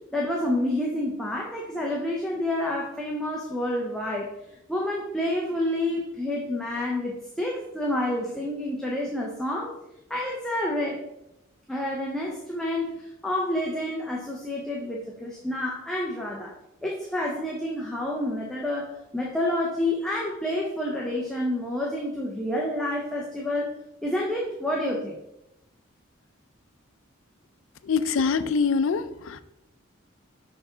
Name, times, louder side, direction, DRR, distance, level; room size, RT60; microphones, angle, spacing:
voice 1, 0.1-4.3 4.7-9.7 10.1-11.0 11.7-16.5 16.8-23.7 24.0-25.2, left 1 dB, ahead, -3 dB, 0.6 m, -29 dB
voice 2, 27.8-29.4, left 5 dB, 75° left, 13 dB, 0.4 m, -24 dB
5.7 x 4.4 x 3.9 m, 0.90 s
head